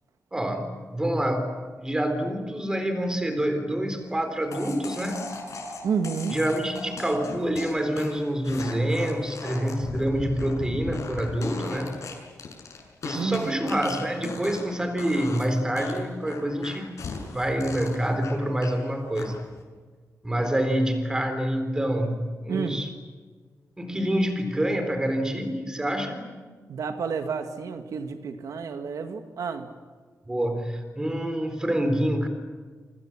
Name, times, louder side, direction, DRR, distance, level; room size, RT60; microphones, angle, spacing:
voice 1, 0.3-5.2 6.3-11.9 13.0-16.9 17.3-19.4 20.2-22.9 23.8-26.3 30.3-32.3, right 1 dB, 10° right, 7 dB, 4.0 m, -27 dB
sound 1, 4.5-14.7 15.0-15.5 15.8-18.8 19.2-19.6, left 4 dB, 60° left, 7.2 m, -37 dB
voice 2, 5.8-6.4 13.1-13.6 22.5-22.8 26.7-29.7, right 6 dB, 80° right, 6 dB, 2.0 m, -30 dB
28.5 x 26.0 x 7.5 m, 1.5 s
wide cardioid pair, 170°, 6 cm